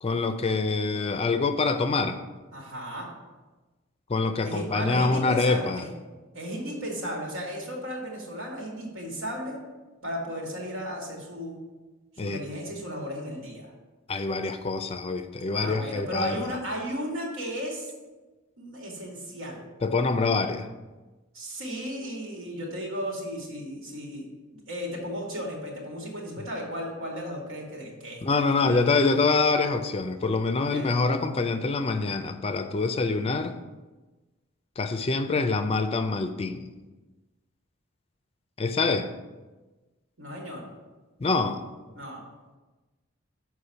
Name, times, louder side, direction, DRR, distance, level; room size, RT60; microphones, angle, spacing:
voice 1, 0.0-2.2 4.1-5.8 12.2-12.4 14.1-16.4 19.8-20.7 28.2-33.5 34.8-36.7 38.6-39.1 41.2-41.6, left 3 dB, 25° left, 9 dB, 0.4 m, -25 dB
voice 2, 2.5-3.1 4.4-5.9 6.3-9.6 10.0-11.6 12.1-13.7 15.5-17.9 18.6-19.6 21.3-24.3 24.5-28.8 30.6-30.9 40.2-40.6 41.9-42.3, equal, 85° right, -1 dB, 2.2 m, -35 dB
6.6 x 4.6 x 5.7 m, 1.2 s
head